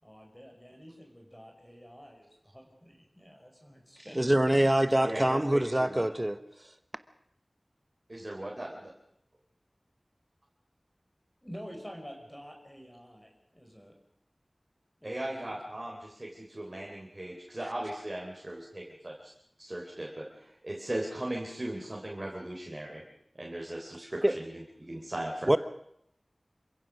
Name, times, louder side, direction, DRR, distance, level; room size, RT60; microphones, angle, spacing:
voice 1, 0.0-4.7 11.4-13.9 15.0-15.6, equal, 10° left, 2 dB, 5.2 m, -48 dB
voice 2, 4.2-6.4 24.2-24.3 25.5-25.6, right 1 dB, 25° right, 12 dB, 1.0 m, -24 dB
voice 3, 5.0-6.1 8.1-8.9 15.0-19.3 19.6-23.0 23.3-25.6, right 1 dB, 40° right, -1 dB, 3.9 m, -38 dB
27.5 x 16.0 x 6.3 m, 0.74 s
wide cardioid pair, 45°, 0 cm